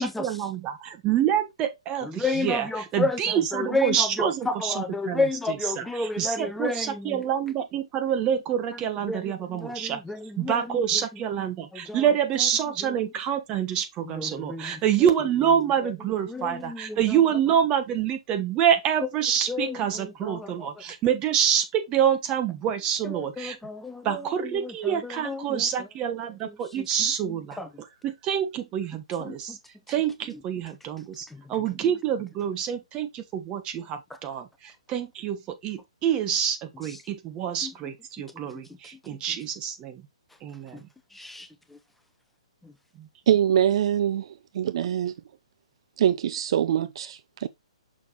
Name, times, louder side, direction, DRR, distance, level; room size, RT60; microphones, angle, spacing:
voice 1, 0.0-10.0 10.4-23.6 24.0-29.6 29.9-40.1 40.4-40.9 42.9-43.1, right 9 dB, 25° right, 1.3 m, -27 dB
voice 2, 2.1-7.2 9.1-10.8 11.7-12.0 14.2-14.7 16.3-17.0 19.5-20.5 23.1-24.3 24.5-25.6 26.8-26.9 27.2-27.7 29.2-29.3 31.3-31.4 37.6-37.7 38.5-38.6 39.1-39.2 40.7-40.8 41.1-41.8 42.6-42.7, left 3 dB, 5° left, 0.5 m, -31 dB
voice 3, 43.3-44.2 44.5-45.1 46.0-47.5, right 10 dB, 55° right, 0.5 m, -23 dB
6.4 x 5.8 x 3.0 m
figure-of-eight pair, 130°, 4 cm